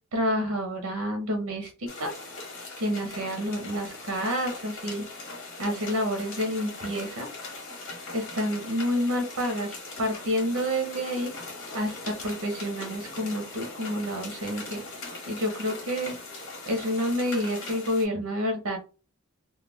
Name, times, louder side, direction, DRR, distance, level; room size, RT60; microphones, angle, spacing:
voice 1, 0.1-2.1 2.8-5.1 5.6-7.3 8.1-11.3 11.7-14.8 15.3-16.2 16.7-18.8, equal, 90° right, 4 dB, 0.7 m, -29 dB
sound 1, 1.9-18.0, left 3 dB, 65° left, 1.1 m, -40 dB
2.3 x 2.1 x 3.3 m, 0.33 s
head